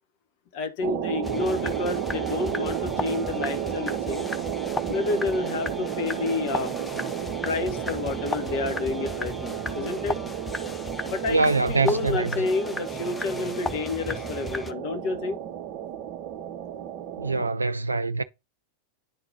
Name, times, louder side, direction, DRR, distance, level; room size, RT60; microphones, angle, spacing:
voice 1, 0.5-4.3 4.9-6.7 7.4-10.2 11.0-15.4, left 3 dB, 45° left, 1.1 m, -29 dB
sound 1, 0.8-17.5, right 10 dB, 45° right, 0.7 m, -32 dB
sound 2, 1.2-14.7, left 3 dB, 10° left, 0.6 m, -36 dB
voice 2, 11.3-12.3 17.2-18.2, right 3 dB, 80° right, 0.3 m, -24 dB
10.5 x 3.9 x 2.7 m
figure-of-eight pair, 90°, 0 cm